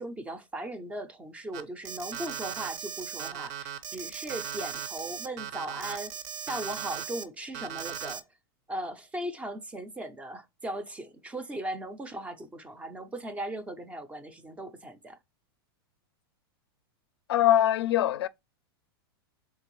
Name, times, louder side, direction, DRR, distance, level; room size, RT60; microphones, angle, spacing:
voice 1, 0.0-6.1 6.5-8.2 8.7-15.2, right 1 dB, 10° right, 0.4 m, -38 dB
Alarm, 1.5-7.2 7.5-8.2, right 8 dB, 50° right, 0.6 m, -37 dB
voice 2, 17.3-18.3, left 12 dB, 90° left, 0.4 m, -23 dB
3.6 x 3.3 x 3.0 m
supercardioid pair, 140°, 13 cm